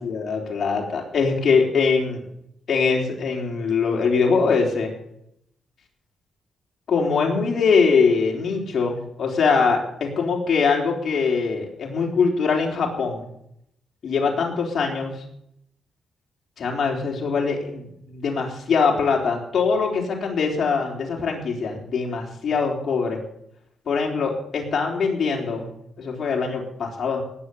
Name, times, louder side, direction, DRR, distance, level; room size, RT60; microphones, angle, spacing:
voice 1, 0.0-2.2 2.7-4.9 6.9-13.3 14.0-15.2 16.6-23.2 23.9-25.7 26.0-27.2, left 5 dB, 55° left, 0 dB, 4.0 m, -22 dB
19.5 x 8.1 x 7.1 m, 0.74 s
cardioid pair, 115°, 0 cm